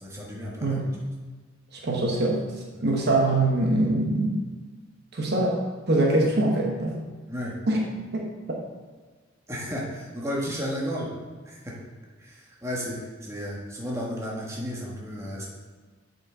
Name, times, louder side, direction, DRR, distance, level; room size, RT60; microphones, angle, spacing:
voice 1, 0.0-0.8 2.7-2.8 7.3-7.6 9.5-11.1 11.4-11.8 12.2-15.5, equal, 15° right, -3 dB, 1.3 m, -33 dB
voice 2, 1.8-2.4 2.8-4.4 5.1-5.6 5.9-7.0 7.7-7.8 8.1-8.3, right 2 dB, 55° right, -1 dB, 1.0 m, -23 dB
7.6 x 5.7 x 3.7 m, 1.4 s
head